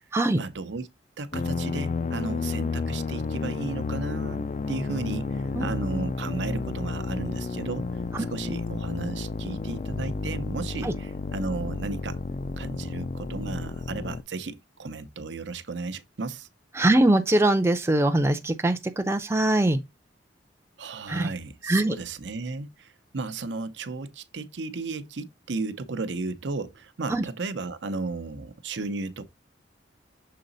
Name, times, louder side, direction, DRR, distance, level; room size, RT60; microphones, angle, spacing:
voice 1, 0.3-0.9 1.2-7.9 8.2-12.2 12.6-16.5 20.8-29.3, right 3 dB, 75° right, 0.7 m, -34 dB
sound 1, 1.3-14.2, left 4 dB, 40° left, 0.4 m, -31 dB
voice 2, 16.8-19.8 21.1-21.3 21.6-22.0 27.1-27.2, right 1 dB, 15° right, 0.6 m, -22 dB
6.8 x 3.9 x 3.9 m
head